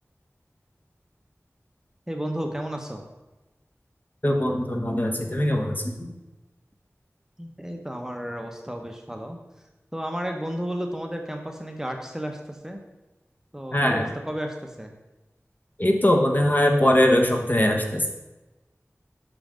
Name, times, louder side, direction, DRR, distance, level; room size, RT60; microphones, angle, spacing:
voice 1, 2.1-3.0 7.4-9.4 9.9-12.8 13.5-14.9, equal, 10° right, 3 dB, 0.8 m, -33 dB
voice 2, 4.2-6.1 13.7-14.1 15.8-18.1, left 1 dB, 35° left, 2 dB, 1.0 m, -21 dB
5.6 x 5.2 x 5.0 m, 1.1 s
wide cardioid pair, 45°, 5 cm